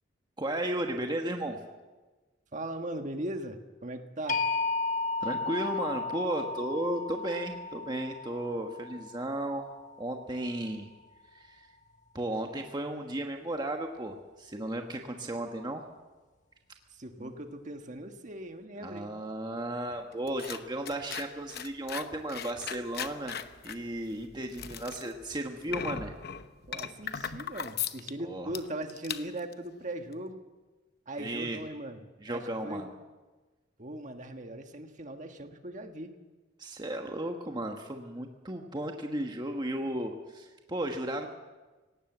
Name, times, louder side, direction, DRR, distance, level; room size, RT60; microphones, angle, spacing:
voice 1, 0.4-1.6 5.2-9.7 10.0-10.9 11.3-11.7 12.1-15.8 17.2-17.3 18.8-23.4 23.6-26.1 28.2-28.5 31.2-31.6 32.2-32.9 36.6-41.3, right 1 dB, 25° right, 3 dB, 1.3 m, -34 dB
voice 2, 2.5-4.4 16.9-19.1 25.7-26.1 26.7-30.4 31.1-32.8 33.8-36.1, right 1 dB, 40° right, 6 dB, 1.5 m, -39 dB
sound 1, 4.3-10.3, left 3 dB, 40° left, 1.4 m, -34 dB
sound 2, 19.9-28.1 28.5-28.6 28.9-29.5 30.1-30.2, left 8 dB, 55° left, 0.9 m, -38 dB
18.5 x 18.0 x 8.0 m, 1.2 s
head